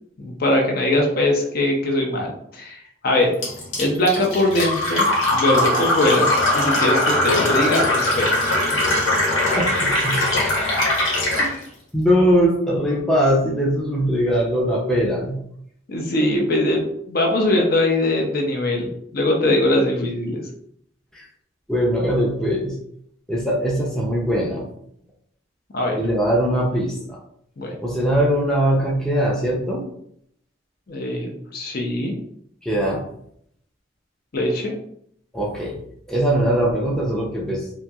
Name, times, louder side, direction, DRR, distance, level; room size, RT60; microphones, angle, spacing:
voice 1, 0.2-3.3 3.8-6.3 6.5-8.4 10.1-10.3 15.9-20.4 25.7-26.0 27.6-27.8 30.9-32.1 34.3-34.7, left 1 dB, 50° left, 1 dB, 0.5 m, -21 dB
Fill (with liquid), 3.4-11.5, left 1 dB, 85° left, 1.1 m, -20 dB
voice 2, 9.4-10.3 11.4-11.7 11.9-15.4 21.1-21.3 21.7-22.8 23.3-24.7 26.0-27.2 27.8-29.8 32.6-33.0 35.3-35.8 36.1-37.7, equal, 5° left, -4 dB, 0.5 m, -21 dB
2.8 x 2.6 x 2.3 m, 0.70 s
head